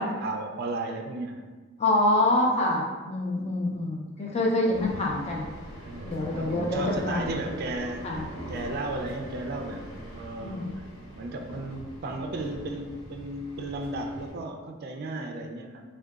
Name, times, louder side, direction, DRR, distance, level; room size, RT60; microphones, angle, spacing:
voice 1, 0.0-1.5 2.1-2.2 4.0-4.1 5.8-8.1 8.5-9.8 10.1-10.9 11.1-15.8, right 2 dB, 50° right, 3 dB, 0.3 m, -34 dB
voice 2, 1.8-5.5 6.0-7.4 8.0-8.2 10.4-10.7, left 1 dB, 30° left, -2 dB, 0.5 m, -26 dB
sound 1, 4.7-14.3, equal, 60° left, 1.1 m, -42 dB
3.7 x 2.2 x 2.3 m, 1.3 s
head